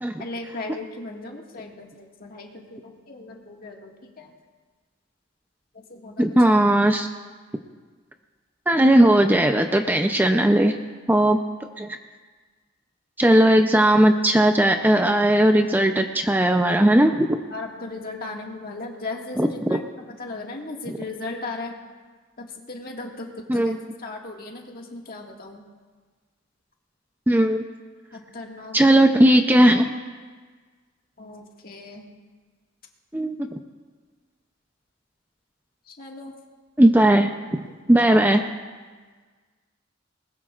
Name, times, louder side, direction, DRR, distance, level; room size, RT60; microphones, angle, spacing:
voice 1, 0.2-4.3 5.9-6.5 17.5-19.8 20.2-21.8 22.4-25.7 28.1-29.0 31.2-32.1 36.0-36.3, left 3 dB, 50° left, 0 dB, 1.8 m, -37 dB
voice 2, 6.2-7.1 8.7-10.8 11.1-11.4 11.8-12.0 13.2-17.4 19.4-19.8 20.9-21.0 23.5-23.8 27.3-27.6 28.7-29.9 33.1-33.6 36.8-37.6 37.9-38.4, right 1 dB, 10° right, 5 dB, 0.5 m, -18 dB
21.0 x 20.0 x 2.5 m, 1.4 s
head